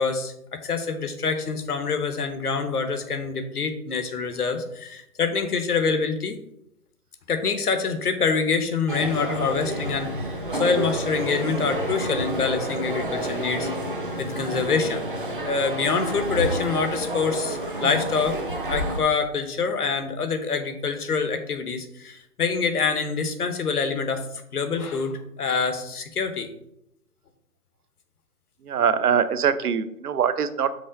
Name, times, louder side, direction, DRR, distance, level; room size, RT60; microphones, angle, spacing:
voice 1, 0.0-6.3 7.3-10.1 10.5-13.7 14.2-15.0 15.3-18.4 18.7-24.3 24.5-26.5, left 5 dB, 75° left, 8 dB, 1.1 m, -26 dB
sound 1, 8.9-19.0, right 1 dB, 35° right, 0.6 m, -29 dB
voice 2, 28.6-30.7, right 7 dB, 75° right, 12 dB, 0.7 m, -23 dB
5.4 x 3.9 x 5.0 m, 0.79 s
hypercardioid pair, 175°, 46 cm